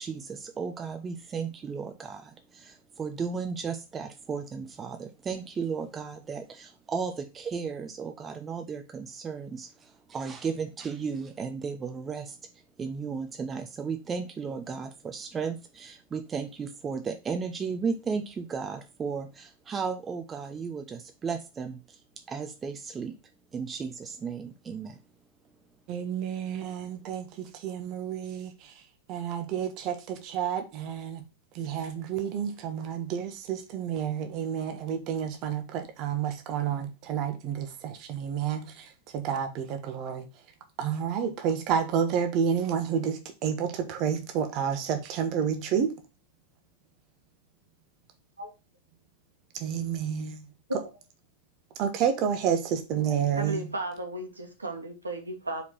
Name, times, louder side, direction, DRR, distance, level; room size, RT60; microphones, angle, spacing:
voice 1, 0.0-23.2 23.5-25.0, right 5 dB, 20° right, 0.7 m, -35 dB
voice 2, 25.9-28.7 29.1-31.2 31.5-40.3 40.8-45.9 49.5-50.4 51.8-53.7, right 8 dB, 40° right, 1.1 m, -30 dB
voice 3, 53.3-55.6, right 2 dB, 80° right, 1.5 m, -35 dB
4.8 x 4.1 x 5.9 m
figure-of-eight pair, 90°, 0 cm